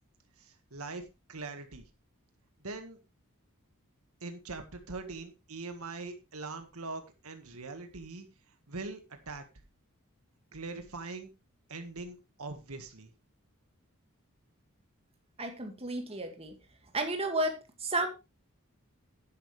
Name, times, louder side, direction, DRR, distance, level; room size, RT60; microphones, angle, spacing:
voice 1, 0.4-1.0 1.3-1.9 2.6-3.0 4.2-8.3 8.7-9.4 10.5-11.3 11.7-13.1, right 3 dB, 75° right, 7 dB, 1.8 m, -42 dB
voice 2, 15.4-16.5 16.9-18.1, right 2 dB, 25° right, 4 dB, 2.1 m, -32 dB
11.0 x 10.5 x 3.3 m, 0.26 s
head